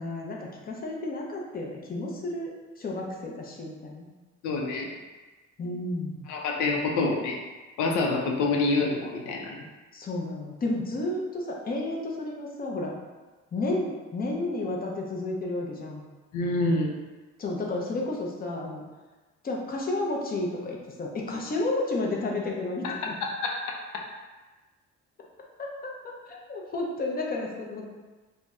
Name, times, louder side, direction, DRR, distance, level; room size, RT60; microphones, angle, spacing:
voice 1, 0.0-4.0 5.6-6.2 9.9-12.9 13.5-16.0 17.4-18.8 19.4-23.1 25.6-25.7 26.0-27.9, left 2 dB, 30° left, -1 dB, 0.6 m, -32 dB
voice 2, 4.4-4.9 6.3-7.4 7.8-9.6 16.3-16.9 22.8-22.9 23.2-23.5 23.9-24.0, left 3 dB, 90° left, 0 dB, 0.5 m, -27 dB
2.6 x 2.1 x 3.4 m, 1.2 s
cardioid pair, 90°, 30 cm